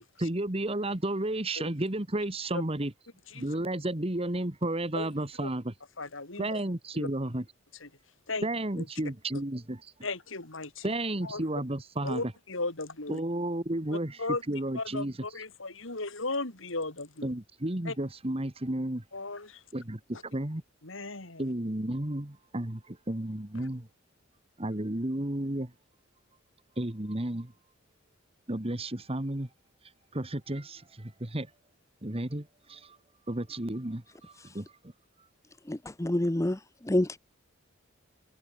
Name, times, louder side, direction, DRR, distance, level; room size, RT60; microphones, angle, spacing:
voice 1, 0.2-2.9 3.3-5.7 6.4-7.4 8.4-9.8 10.8-12.2 13.1-14.2 14.5-15.1 17.2-19.0 19.7-20.6 21.4-23.9 24.6-25.7 26.8-27.5 28.5-29.5 30.1-31.5 32.0-33.0 33.3-34.7, right 1 dB, 30° right, 1.7 m, -32 dB
voice 2, 6.0-6.6 6.9-7.1 7.8-7.9 8.3-8.5 8.8-8.9 9.3-9.4 10.0-10.9 11.2-11.4 12.0-13.2 13.9-17.3 17.8-18.0 19.1-19.6 20.1-20.2 20.8-21.5, left 3 dB, 70° left, 3.8 m, -36 dB
voice 3, 35.7-37.2, left 1 dB, 15° left, 0.7 m, -28 dB
open air
head